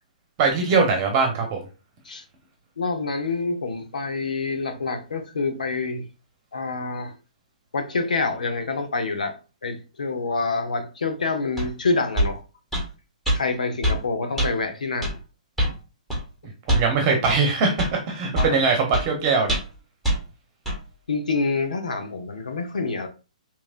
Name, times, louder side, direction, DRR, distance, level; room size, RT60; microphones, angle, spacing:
voice 1, 0.4-1.6 16.7-19.6, right 4 dB, 30° right, 1.0 m, -21 dB
voice 2, 2.8-6.0 6.5-7.1 7.7-9.3 9.6-12.4 13.3-15.1 18.4-18.6 21.1-23.1, left 3 dB, 85° left, 1.0 m, -27 dB
sound 1, 11.6-11.7 12.2-12.3 12.7-12.9 13.3-13.4 13.8-14.0 14.4-14.5 15.0-15.2 15.6-15.8 16.1-16.2 16.7-16.9 17.3-17.4 17.8-17.9 18.3-18.6 18.9-19.1 19.5-19.8 20.0-20.2 20.7-20.8, equal, 5° left, 1.7 m, -23 dB
4.8 x 3.0 x 2.5 m
hypercardioid pair, 140°, 4 cm